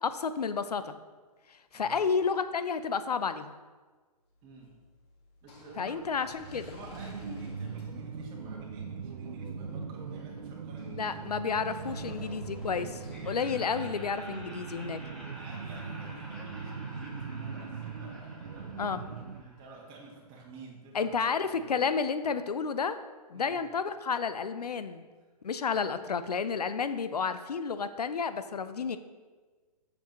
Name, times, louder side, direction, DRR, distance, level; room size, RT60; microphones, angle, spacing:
voice 1, 0.0-1.0 1.7-3.5 5.8-6.6 10.9-15.0 18.8-19.0 20.9-23.0 23.3-25.0 25.4-29.0, left 5 dB, 75° left, 12 dB, 0.6 m, -31 dB
sound 1, 4.3-17.4, left 1 dB, 40° left, 1.7 m, -53 dB
voice 2, 4.4-4.8 5.4-6.1 6.4-11.5 11.8-12.4 15.3-21.7 23.3-23.6, right 2 dB, 25° right, -3 dB, 1.5 m, -50 dB
sound 2, 6.9-19.4, right 5 dB, 75° right, 0.6 m, -40 dB
Laughter, 13.1-20.0, equal, 5° left, 1.3 m, -50 dB
7.8 x 7.0 x 3.1 m, 1.4 s
figure-of-eight pair, 125°, 20 cm